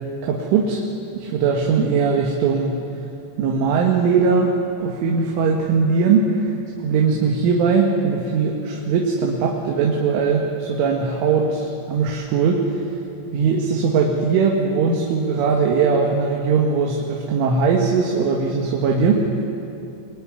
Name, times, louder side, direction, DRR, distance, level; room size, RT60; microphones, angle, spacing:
voice 1, 0.2-0.8 1.1-2.8 3.4-4.5 4.8-12.8 13.3-19.3, right 5 dB, 85° right, 0 dB, 4.4 m, -20 dB
25.0 x 23.5 x 9.7 m, 2.7 s
omnidirectional pair, 5.5 m